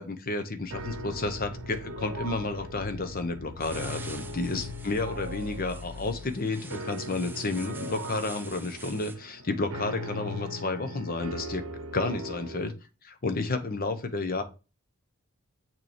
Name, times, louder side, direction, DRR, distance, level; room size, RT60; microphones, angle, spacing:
voice 1, 0.0-11.6 11.9-12.7 13.0-14.4, left 3 dB, 40° left, 9 dB, 0.8 m, -31 dB
sound 1, 0.6-6.4, left 5 dB, 75° left, 0.5 m, -44 dB
sound 2, 0.7-12.7, right 1 dB, 65° right, 0.8 m, -40 dB
sound 3, 3.6-9.1, right 3 dB, 10° right, 0.4 m, -47 dB
6.6 x 3.0 x 5.0 m, 0.31 s
head